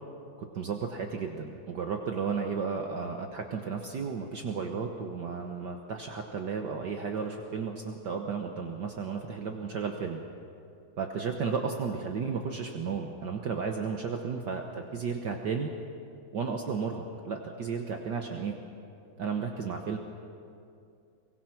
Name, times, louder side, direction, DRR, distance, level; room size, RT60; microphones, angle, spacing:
voice 1, 0.5-10.2 11.0-15.7 16.3-18.6 19.2-20.0, right 5 dB, 60° right, 3 dB, 1.6 m, -33 dB
23.5 x 22.0 x 6.0 m, 2.5 s
omnidirectional pair, 2.3 m